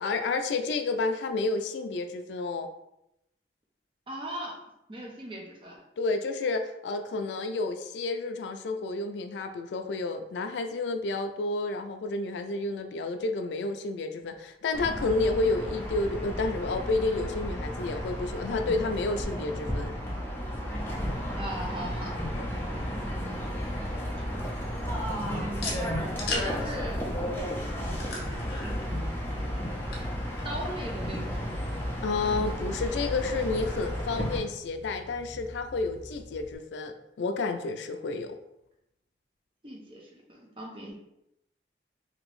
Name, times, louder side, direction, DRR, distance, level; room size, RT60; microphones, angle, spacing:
voice 1, 0.0-2.7 6.0-19.9 32.0-38.4, left 3 dB, 80° left, 7 dB, 0.3 m, -30 dB
voice 2, 4.1-4.5 4.9-5.8 21.4-22.2 22.9-23.5 25.1-25.6 26.3-27.0 28.6-29.0 30.4-31.4 39.6-40.9, right 1 dB, 30° right, -1 dB, 0.6 m, -39 dB
sound 1, 14.7-34.4, equal, 15° left, 0.5 m, -33 dB
sound 2, 22.3-36.5, left 2 dB, 55° left, 0.7 m, -43 dB
3.0 x 2.6 x 3.0 m, 0.83 s
head